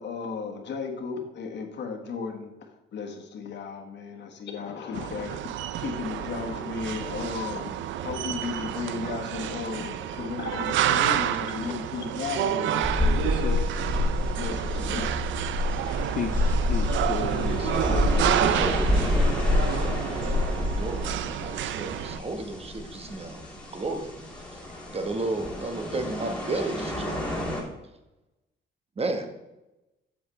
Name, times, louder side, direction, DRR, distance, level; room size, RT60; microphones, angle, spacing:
voice 1, 0.0-2.5 2.9-5.4 5.8-7.7 8.0-13.3 14.4-15.5, left 5 dB, 65° left, 3 dB, 1.5 m, -34 dB
sound 1, 4.9-22.2, right 11 dB, 75° right, 0.5 m, -29 dB
sound 2, 12.8-27.6, left 2 dB, 5° left, 2.5 m, -28 dB
voice 2, 13.2-13.7 16.1-18.6 20.4-20.5 23.4-23.5 24.7-24.9, left 7 dB, 45° left, 6 dB, 0.5 m, -35 dB
voice 3, 17.5-18.0 18.4-19.4 20.8-23.4 23.7-24.1 24.9-27.2 29.0-29.3, right 2 dB, 30° right, 6 dB, 1.2 m, -33 dB
7.7 x 7.7 x 3.2 m, 0.98 s
cardioid pair, 90°, 20 cm